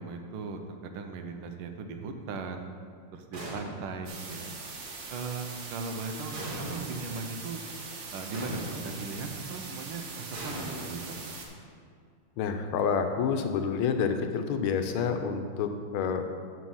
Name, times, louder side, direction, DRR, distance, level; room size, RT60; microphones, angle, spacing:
voice 1, 0.0-2.7 3.1-4.5 5.1-7.6 8.1-11.2, right 4 dB, 80° right, 5 dB, 1.5 m, -38 dB
sound 1, 3.3-4.1 6.3-7.1 8.3-9.1 10.3-11.5, equal, 45° right, 1.6 m, -39 dB
sound 2, 4.1-11.5, right 4 dB, 60° right, 1.7 m, -42 dB
voice 2, 12.4-16.2, left 6 dB, 75° left, 7 dB, 1.4 m, -28 dB
7.0 x 6.1 x 5.5 m, 2.1 s
omnidirectional pair, 2.4 m